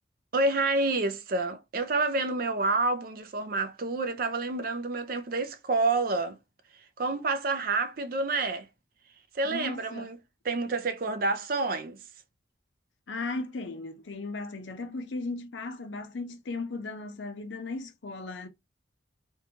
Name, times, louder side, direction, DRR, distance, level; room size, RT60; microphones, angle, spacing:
voice 1, 0.3-6.4 7.0-8.7 9.3-10.2 10.4-12.0, right 3 dB, 50° right, 0.4 m, -28 dB
voice 2, 9.4-10.1 13.1-18.5, left 3 dB, 90° left, 0.6 m, -36 dB
2.7 x 2.3 x 2.8 m
head